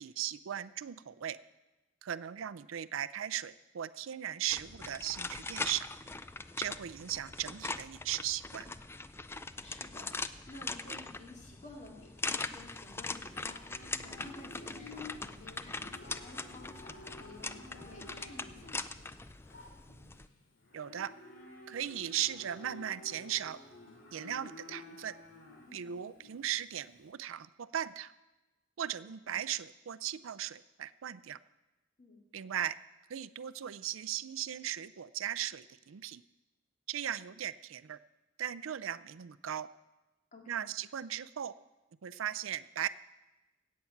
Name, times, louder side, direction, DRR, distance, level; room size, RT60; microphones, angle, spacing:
voice 1, 0.0-1.4 2.0-5.9 6.6-8.7 20.7-21.1 21.7-23.6 24.1-25.1 25.7-28.1 28.8-31.4 32.3-32.8 33.1-36.2 36.9-38.0 38.4-39.7 40.5-41.5 42.0-42.9, right 11 dB, 85° right, 16 dB, 0.4 m, -37 dB
sound 1, 4.5-20.3, left 3 dB, 10° left, 0.3 m, -41 dB
voice 2, 9.3-19.1 25.7-25.9 29.2-29.3 32.0-32.2 40.3-40.7, left 2 dB, 40° left, 0 dB, 2.3 m, -53 dB
Livestock farm animals working animals, 12.3-27.1, left 2 dB, 70° left, 2.6 m, -52 dB
16.5 x 8.5 x 5.8 m, 1.1 s
head